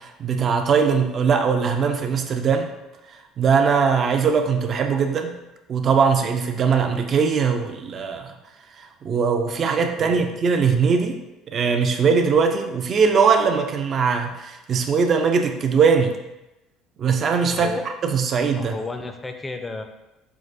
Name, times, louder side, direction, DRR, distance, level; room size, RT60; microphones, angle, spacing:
voice 1, 0.0-2.7 3.4-5.4 5.7-8.3 8.8-11.2 11.5-16.2 17.0-17.7 18.0-18.7, right 5 dB, 45° right, 5 dB, 0.4 m, -20 dB
voice 2, 10.0-10.4 17.5-17.8 18.6-19.8, left 3 dB, 20° left, 5 dB, 0.4 m, -33 dB
4.6 x 2.2 x 2.5 m, 0.97 s
hypercardioid pair, 75°, 0 cm